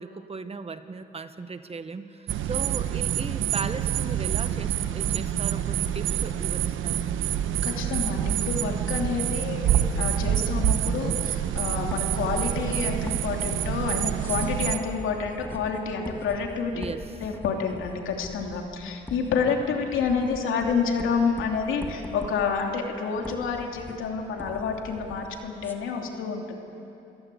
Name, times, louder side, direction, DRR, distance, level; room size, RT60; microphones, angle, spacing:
voice 1, 0.0-7.0 16.7-17.1, right 4 dB, 30° right, 10 dB, 1.3 m, -37 dB
sound 1, 2.3-14.8, right 10 dB, 80° right, 1.1 m, -27 dB
voice 2, 7.6-16.9 17.2-26.5, left 5 dB, 85° left, 2 dB, 2.9 m, -29 dB
sound 2, 10.7-25.7, left 1 dB, 10° left, 2.0 m, -43 dB
28.5 x 17.0 x 8.4 m, 3.0 s
cardioid pair, 90°, 20 cm